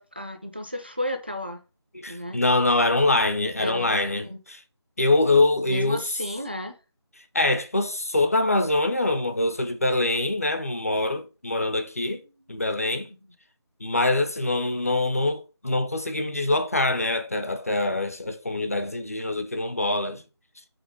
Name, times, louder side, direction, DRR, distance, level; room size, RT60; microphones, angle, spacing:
voice 1, 0.0-1.6 2.1-2.4 3.6-4.4 5.7-6.7 13.2-13.3, left 1 dB, 20° right, 0.4 m, -33 dB
voice 2, 1.9-4.6 5.0-6.1 7.3-12.2 12.5-13.1 13.8-20.2, left 2 dB, 35° left, 0.5 m, -24 dB
5.0 x 4.1 x 4.9 m
figure-of-eight pair, 170°, 15 cm